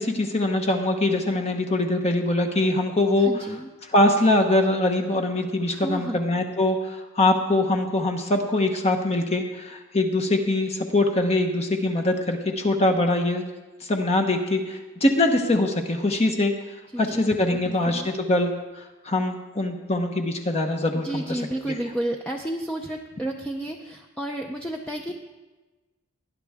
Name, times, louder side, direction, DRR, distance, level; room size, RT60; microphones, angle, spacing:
voice 1, 0.0-3.3 3.9-13.4 13.8-16.5 17.0-21.4, left 2 dB, 30° left, 3 dB, 1.0 m, -23 dB
voice 2, 3.2-3.7 5.7-6.2 16.9-18.1 20.9-25.1, right 1 dB, 5° left, 1 dB, 0.6 m, -32 dB
19.0 x 10.5 x 3.6 m, 1.2 s
head